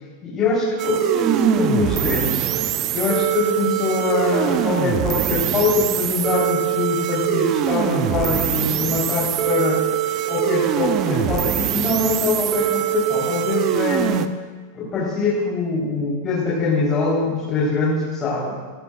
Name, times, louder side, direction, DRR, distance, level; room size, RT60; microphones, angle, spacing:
voice 1, 0.2-2.5 2.9-9.8 10.3-14.3 14.7-18.6, left 3 dB, 25° left, -8 dB, 4.5 m, -23 dB
sound 1, 0.8-14.3, right 11 dB, 35° right, 0.8 m, -23 dB
18.5 x 18.0 x 2.7 m, 1.4 s
figure-of-eight pair, 90°, 0 cm